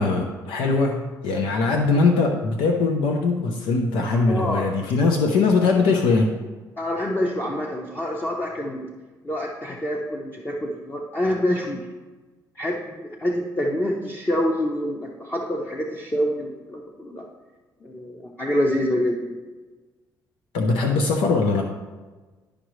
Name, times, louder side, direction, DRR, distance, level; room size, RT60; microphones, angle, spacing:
voice 1, 0.0-6.4 20.5-21.6, left 3 dB, 90° left, 2 dB, 0.7 m, -21 dB
voice 2, 4.3-4.7 6.8-8.9 9.2-11.9 12.5-17.3 17.8-19.4, equal, 25° left, -1 dB, 0.9 m, -26 dB
11.0 x 5.1 x 3.1 m, 1.3 s
cardioid pair, 90°, 8 cm